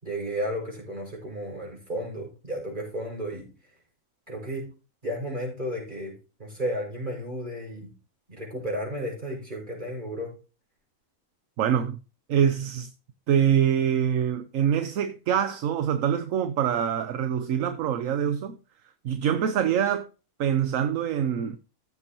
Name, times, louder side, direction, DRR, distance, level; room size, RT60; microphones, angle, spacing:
voice 1, 0.0-3.5 4.3-4.7 5.0-6.1 6.4-7.9 8.3-10.3, equal, 30° right, 5.6 m, -33 dB
voice 2, 11.6-12.0 12.3-12.9 13.3-18.6 19.0-20.1 20.4-21.6, right 9 dB, 65° right, 1.0 m, -24 dB
15.0 x 7.0 x 2.9 m
omnidirectional pair, 1.6 m